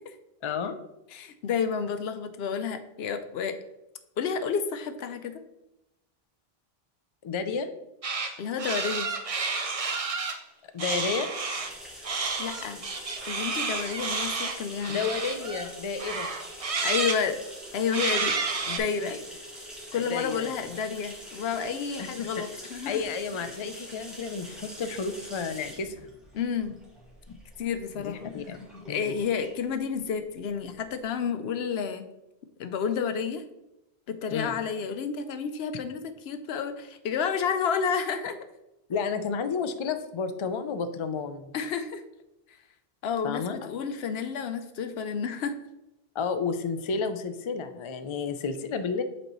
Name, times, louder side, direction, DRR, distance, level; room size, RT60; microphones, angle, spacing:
voice 1, 0.4-0.7 7.2-7.7 10.7-11.3 14.9-16.3 19.0-19.2 19.9-20.5 22.0-22.3 22.9-26.1 27.3-27.4 27.9-29.1 34.3-34.5 38.9-41.5 43.2-43.7 46.1-49.0, left 5 dB, 45° left, 9 dB, 0.4 m, -31 dB
voice 2, 1.1-3.6 4.2-5.4 8.4-9.1 12.4-12.8 13.3-15.0 16.8-17.4 17.7-18.4 18.7-19.2 19.9-23.1 26.3-26.8 27.6-28.3 28.9-32.1 32.6-33.4 34.1-38.4 41.5-42.0 43.0-45.6, left 6 dB, 80° left, 10 dB, 0.8 m, -30 dB
sound 1, 8.0-8.3 8.6-10.4 10.8-11.7 12.0-15.7 16.0-17.2 17.9-18.8, right 4 dB, 40° right, 0.6 m, -30 dB
sound 2, 11.5-31.0, equal, ahead, 1.5 m, -45 dB
7.9 x 4.3 x 3.0 m, 0.90 s
omnidirectional pair, 1.1 m